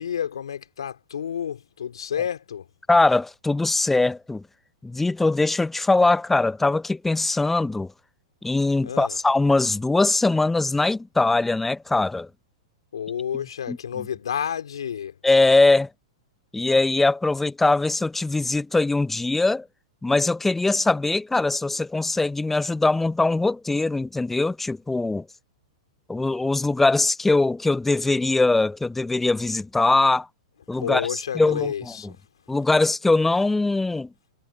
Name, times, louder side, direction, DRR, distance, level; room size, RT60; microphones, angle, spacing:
voice 1, 0.0-2.7 8.8-9.2 12.9-15.2 30.7-32.2, left 8 dB, 70° left, 4.2 m, -30 dB
voice 2, 2.9-4.4 4.8-7.9 8.4-12.3 13.7-13.8 15.2-15.9 16.5-19.7 20.0-25.2 26.1-30.3 30.7-31.7 32.5-34.1, left 2 dB, 5° left, 0.8 m, -21 dB
figure-of-eight pair, 105°, 3 cm